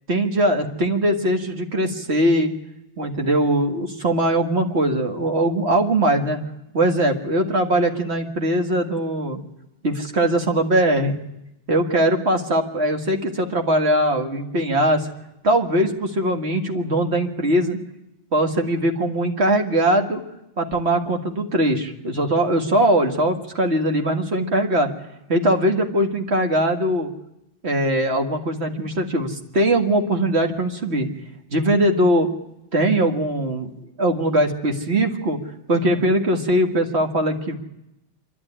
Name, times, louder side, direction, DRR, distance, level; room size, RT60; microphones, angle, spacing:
voice 1, 0.1-2.5 3.0-6.4 6.7-9.4 9.8-11.2 11.7-15.1 15.4-17.8 18.3-20.2 20.6-24.9 25.3-27.1 27.6-31.1 31.5-32.3 32.7-33.7 34.0-35.4 35.7-37.6, right 1 dB, 80° right, 5 dB, 2.2 m, -21 dB
26.0 x 11.5 x 10.0 m, 0.88 s
omnidirectional pair, 1.1 m